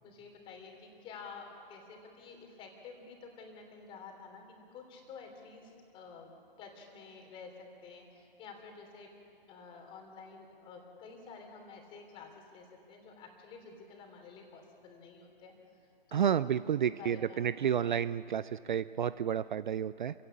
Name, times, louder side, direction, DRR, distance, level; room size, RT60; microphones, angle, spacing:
voice 1, 0.0-4.4 4.7-6.3 6.6-7.5 7.8-9.1 9.5-15.5 16.1-16.5 16.9-17.9 19.0-19.1, left 5 dB, 15° left, 3 dB, 3.0 m, -50 dB
voice 2, 16.1-20.1, right 9 dB, 55° right, 16 dB, 0.5 m, -31 dB
26.5 x 16.5 x 8.7 m, 2.6 s
figure-of-eight pair, 140°, 29 cm